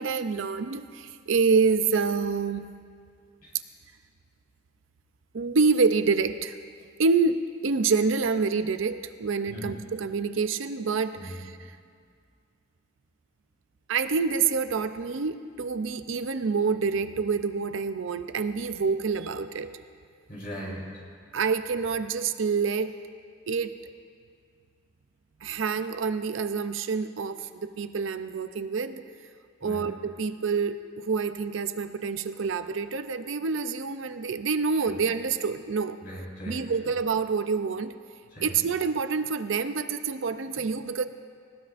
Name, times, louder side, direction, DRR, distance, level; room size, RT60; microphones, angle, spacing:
voice 1, 0.0-2.7 5.3-6.6 7.0-11.6 13.9-19.8 21.3-23.0 23.5-23.7 25.4-29.1 29.6-36.0 36.5-37.9 38.4-41.1, right 5 dB, 75° right, 10 dB, 0.5 m, -27 dB
voice 2, 20.3-20.8 29.6-29.8 34.9-35.0 36.0-36.6 38.3-38.5, equal, 45° left, -5 dB, 4.3 m, -38 dB
19.5 x 17.5 x 2.5 m, 2.1 s
head